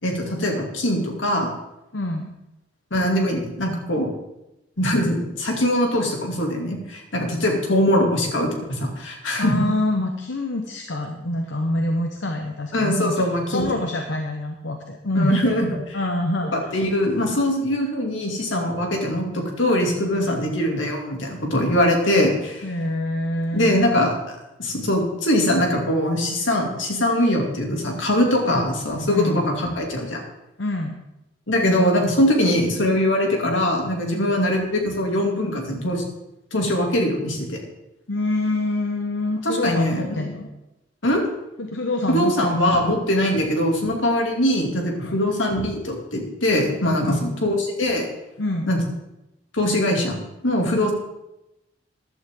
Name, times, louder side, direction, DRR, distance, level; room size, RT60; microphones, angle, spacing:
voice 1, 0.0-1.5 2.9-4.1 4.8-9.7 12.7-13.7 15.1-16.0 16.5-22.6 23.5-30.2 31.5-36.0 36.5-37.6 39.4-40.2 41.0-41.2 42.1-48.1 48.7-48.8 49.5-50.9, left 1 dB, 85° left, 1 dB, 2.8 m, -22 dB
voice 2, 1.9-2.3 9.4-13.2 13.5-15.4 15.9-16.7 22.6-24.0 29.1-29.5 30.6-31.0 34.1-34.3 38.1-40.5 41.6-42.5 45.0-45.2 47.0-47.3 48.4-48.7, left 1 dB, 70° left, 3 dB, 1.1 m, -26 dB
14.5 x 11.5 x 3.8 m, 0.92 s
head